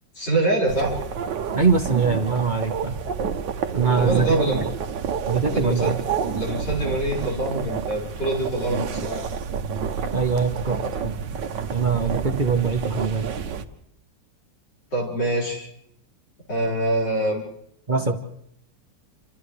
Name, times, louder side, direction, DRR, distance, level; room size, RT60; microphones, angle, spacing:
voice 1, 0.1-1.0 3.9-4.6 5.4-5.9 6.3-9.2 14.9-15.7 16.5-17.4, right 1 dB, 65° left, -3 dB, 6.1 m, -25 dB
sound 1, 0.7-13.6, right 6 dB, 70° right, 1.5 m, -29 dB
voice 2, 1.5-3.0 3.7-4.6 5.3-6.0 10.1-11.1 11.7-13.3 17.9-18.1, right 5 dB, 30° right, 5 dB, 1.0 m, -22 dB
29.0 x 27.0 x 3.3 m, 0.76 s
omnidirectional pair, 2.0 m